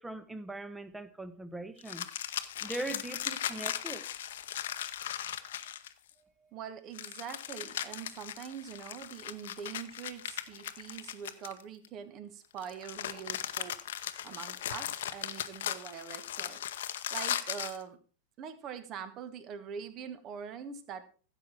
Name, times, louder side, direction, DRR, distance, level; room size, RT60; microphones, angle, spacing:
voice 1, 0.0-2.1 2.6-4.0, right 2 dB, 10° right, 1.0 m, -40 dB
sound 1, 1.8-6.1 6.9-11.9 12.6-17.8, left 11 dB, 60° left, 0.8 m, -38 dB
voice 2, 6.2-13.8 14.2-18.0 18.4-21.0, right 7 dB, 35° right, 1.4 m, -44 dB
15.0 x 7.4 x 4.5 m
figure-of-eight pair, 90°, 0 cm